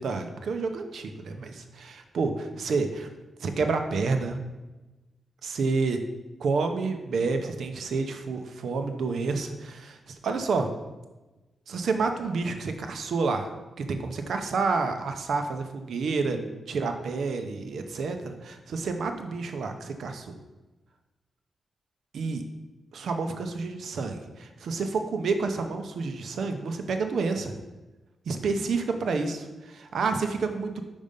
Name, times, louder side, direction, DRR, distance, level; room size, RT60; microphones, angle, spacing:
voice 1, 0.0-3.1 3.4-4.4 5.4-6.0 6.4-10.7 11.7-13.5 13.8-18.2 18.7-20.3 22.1-22.4 22.9-27.5 28.3-30.8, right 4 dB, 70° right, 6 dB, 0.6 m, -29 dB
5.3 x 5.2 x 5.2 m, 1.1 s
wide cardioid pair, 170°, 0 cm